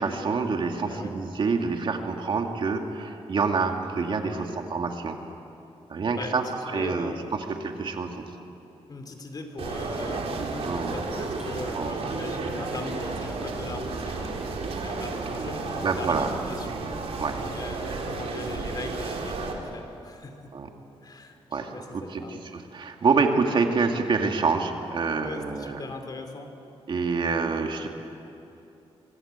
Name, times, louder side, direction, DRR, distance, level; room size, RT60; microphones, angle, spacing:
voice 1, 0.0-5.2 5.9-6.4 6.7-8.2 10.6-10.9 11.7-11.9 15.8-16.3 17.2-17.4 20.5-20.7 21.5-25.8 26.9-27.9, right 4 dB, 50° right, 3 dB, 2.2 m, -27 dB
voice 2, 0.8-1.1 4.2-4.6 6.1-7.3 8.9-16.8 17.2-20.5 21.0-21.4 21.7-22.4 25.2-26.6, left 3 dB, 40° left, 6 dB, 2.8 m, -39 dB
sound 1, 9.6-19.5, right 3 dB, 75° right, 3.7 m, -32 dB
sound 2, 11.3-16.3, equal, 5° right, 4.8 m, -49 dB
24.5 x 24.5 x 8.2 m, 2.9 s
wide cardioid pair, 135°, 10 cm